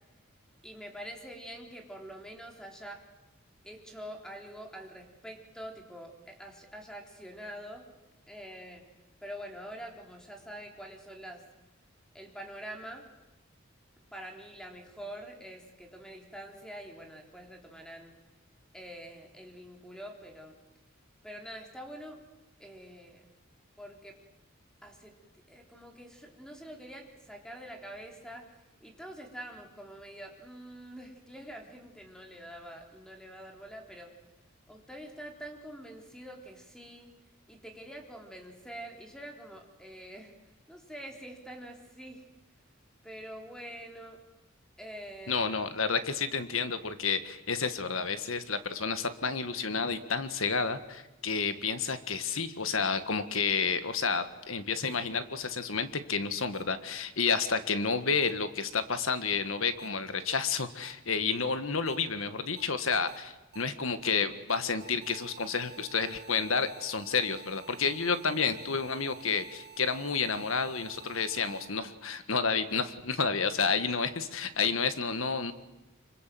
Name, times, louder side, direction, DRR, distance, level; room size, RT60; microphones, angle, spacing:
voice 1, 0.6-3.0 3.6-7.9 8.3-8.8 9.2-11.4 12.1-13.1 14.1-18.1 18.7-20.6 21.2-22.2 22.6-23.3 23.8-24.2 24.8-25.1 25.5-28.5 28.8-34.1 34.7-37.1 37.5-40.3 40.7-42.3 43.0-44.2 44.8-45.6, equal, 5° left, 2 dB, 3.8 m, -45 dB
voice 2, 45.3-75.5, left 5 dB, 75° left, 10 dB, 1.7 m, -30 dB
sound 1, 54.9-55.0 56.5-56.6 58.2-58.3 59.8-59.9 60.8-60.9 61.9-62.0 62.6-62.7 63.1-63.2 63.5-63.6 64.0-64.1 64.5-71.7, right 7 dB, 55° right, 1.8 m, -51 dB
26.0 x 24.0 x 7.7 m, 1.0 s
head